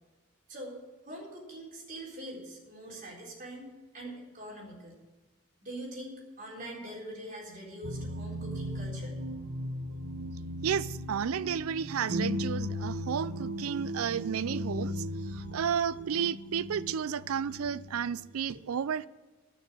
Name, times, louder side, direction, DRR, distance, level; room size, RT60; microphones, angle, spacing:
voice 1, 0.5-0.8 1.1-5.0 5.6-9.2, right 1 dB, 40° right, 4.0 m, -43 dB
sound 1, 7.8-18.5, equal, 70° right, 1.0 m, -37 dB
voice 2, 10.6-19.1, right 7 dB, 85° right, 0.4 m, -32 dB
12.0 x 6.5 x 9.1 m
head